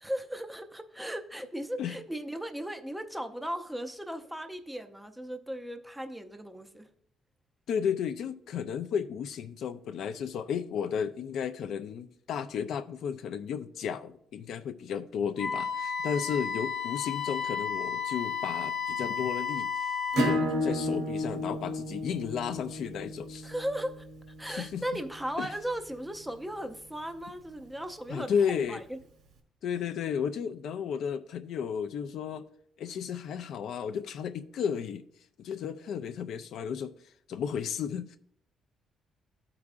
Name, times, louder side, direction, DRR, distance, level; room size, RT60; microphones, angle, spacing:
voice 1, 0.0-6.9 23.4-24.0 24.4-29.0, equal, 5° right, 0.5 m, -37 dB
voice 2, 7.7-20.0 20.2-23.5 24.5-24.8 25.4-25.5 28.1-28.8 29.6-32.4 32.8-35.0 35.4-36.9 37.3-38.2, left 7 dB, 60° left, 0.4 m, -33 dB
Wind instrument woodwind instrument, 15.4-20.4, left 6 dB, 35° left, 0.7 m, -33 dB
Acoustic guitar / Strum, 20.1-25.4, left 1 dB, 80° right, 1.2 m, -32 dB
13.0 x 4.8 x 2.4 m
cardioid pair, 165°, 0 cm